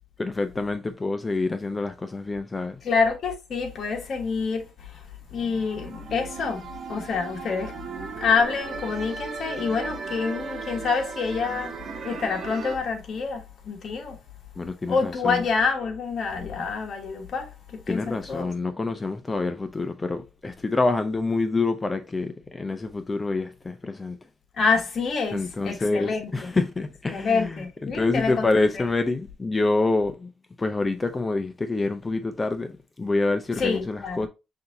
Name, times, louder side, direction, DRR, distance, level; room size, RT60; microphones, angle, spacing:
voice 1, 0.2-2.8 14.6-15.4 17.9-24.2 25.3-30.3 30.6-34.3, left 3 dB, 25° left, 0.5 m, -27 dB
voice 2, 2.8-4.6 5.3-7.7 8.2-11.7 12.0-14.2 14.9-18.5 24.6-26.5 27.1-28.5 28.7-28.8 33.6-34.3, left 5 dB, 55° left, 1.3 m, -27 dB
sound 1, 5.3-12.8, right 5 dB, 50° right, 1.1 m, -36 dB
5.8 x 2.7 x 2.6 m
cardioid pair, 90°, 0 cm